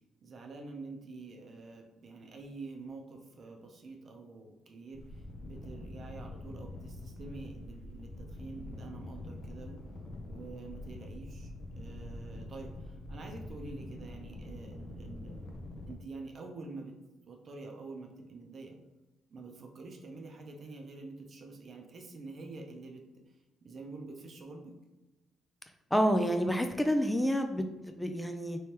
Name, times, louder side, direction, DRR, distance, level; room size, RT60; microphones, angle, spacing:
voice 1, 0.2-9.8 10.2-11.5 11.8-15.5 15.9-17.0 17.3-18.8 19.3-23.1 23.6-24.7, right 3 dB, 50° right, 2 dB, 0.6 m, -47 dB
sound 1, 4.9-15.9, left 1 dB, 65° left, 0.6 m, -45 dB
voice 2, 25.9-28.6, equal, 10° left, 6 dB, 0.3 m, -29 dB
3.2 x 3.1 x 2.9 m, 1.0 s
cardioid pair, 90°, 0 cm